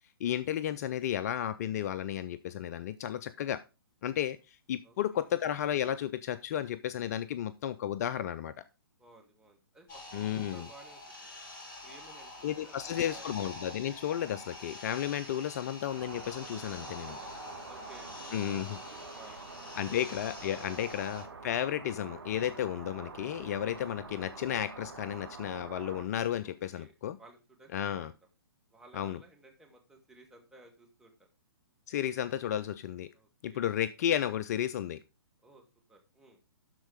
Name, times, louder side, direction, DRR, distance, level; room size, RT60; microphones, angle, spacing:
voice 1, 0.2-3.6 4.0-8.5 10.1-10.6 12.4-17.2 18.3-18.8 19.8-27.2 27.7-28.1 28.9-29.2 31.9-33.1 33.4-35.0, left 10 dB, 40° left, 15 dB, 0.5 m, -33 dB
voice 2, 4.8-5.3 9.0-11.3 11.8-13.4 15.1-15.6 17.0-17.3 17.7-20.3 26.4-26.9 27.2-28.1 28.7-31.2 33.1-33.7 35.4-35.6 35.9-36.4, right 2 dB, 5° right, 0 dB, 2.0 m, -57 dB
sound 1, 9.9-21.2, left 1 dB, 25° left, 4.5 m, -46 dB
sound 2, 15.9-26.1, right 4 dB, 70° right, 2.1 m, -47 dB
12.0 x 4.5 x 5.0 m, 0.29 s
figure-of-eight pair, 130°, 13 cm